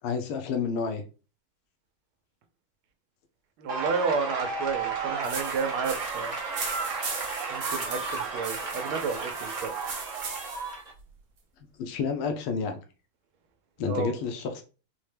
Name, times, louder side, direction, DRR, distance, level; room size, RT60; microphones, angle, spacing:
voice 1, 0.0-1.0 11.8-12.8 13.8-14.6, left 5 dB, 85° left, 1.5 m, -30 dB
voice 2, 3.6-6.4 7.5-9.7 13.8-14.2, right 5 dB, 80° right, 1.4 m, -31 dB
sound 1, 3.7-10.9, right 4 dB, 35° right, 0.6 m, -33 dB
sound 2, 5.2-10.7, right 4 dB, 55° right, 1.1 m, -38 dB
4.5 x 2.1 x 3.3 m
omnidirectional pair, 2.3 m